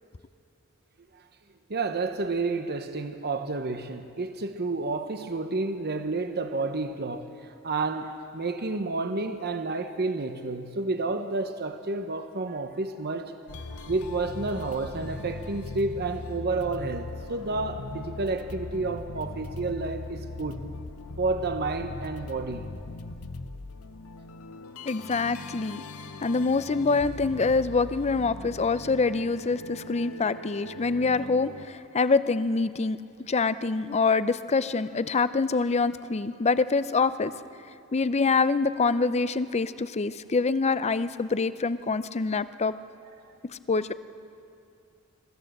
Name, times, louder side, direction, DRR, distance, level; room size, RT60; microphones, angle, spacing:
voice 1, 1.7-7.3 7.6-20.6 21.2-22.7 28.6-28.7, right 3 dB, 50° right, 8 dB, 0.9 m, -30 dB
sound 1, 13.5-31.7, left 2 dB, 85° left, 0.8 m, -40 dB
voice 2, 24.9-25.8 26.2-37.3 37.9-42.8 43.7-43.9, left 4 dB, 30° left, 14 dB, 0.5 m, -25 dB
23.0 x 14.5 x 7.9 m, 2.6 s
head